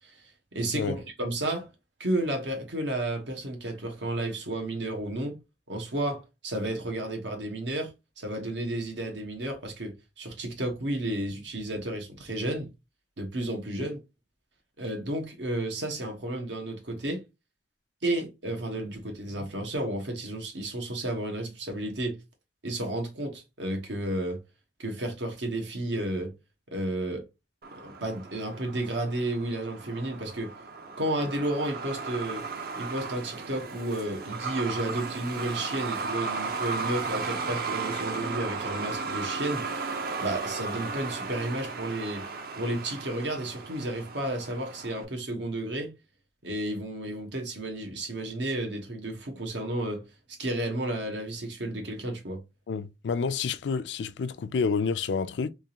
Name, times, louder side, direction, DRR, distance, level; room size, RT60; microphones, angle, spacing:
voice 1, 0.5-1.7 2.0-5.4 5.7-12.7 13.2-14.0 14.8-17.2 18.0-22.1 22.6-24.4 24.8-26.3 26.7-27.2 27.8-30.5 31.0-32.5 32.8-42.3 42.5-45.9 46.4-50.0 50.4-52.4, right 1 dB, 85° right, 1.3 m, -32 dB
Truck, 27.6-45.0, right 4 dB, 60° right, 0.6 m, -35 dB
voice 2, 52.7-55.5, left 5 dB, 75° left, 0.4 m, -29 dB
3.5 x 3.0 x 2.8 m
head